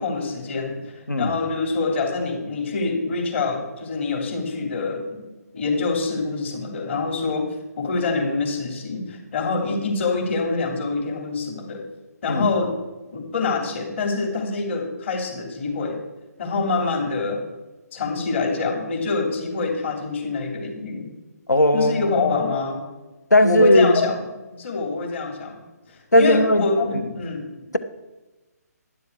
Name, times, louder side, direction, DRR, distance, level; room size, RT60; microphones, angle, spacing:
voice 1, 0.0-5.3 5.5-11.8 12.2-12.8 13.1-16.0 16.4-17.4 17.9-21.1 21.7-22.8 23.4-24.2 24.5-25.6 25.9-27.7, left 4 dB, 45° left, 2 dB, 3.0 m, -25 dB
voice 2, 21.5-22.1 23.3-23.9 26.1-26.7, left 1 dB, 85° left, 12 dB, 1.2 m, -17 dB
11.5 x 11.0 x 4.7 m, 1.1 s
figure-of-eight pair, 140°, 9 cm